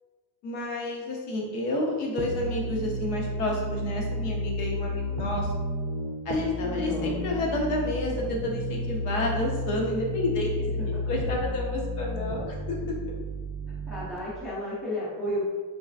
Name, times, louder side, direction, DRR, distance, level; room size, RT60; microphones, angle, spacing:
voice 1, 0.4-5.5 6.2-10.5 11.1-12.6, left 1 dB, 65° left, -1 dB, 1.0 m, -30 dB
sound 1, 2.2-14.2, left 1 dB, 50° right, 0.5 m, -32 dB
voice 2, 6.6-7.2 10.6-11.0 13.9-15.4, equal, ahead, -7 dB, 0.4 m, -33 dB
4.0 x 3.1 x 2.4 m, 1.4 s
cardioid pair, 160°, 45 cm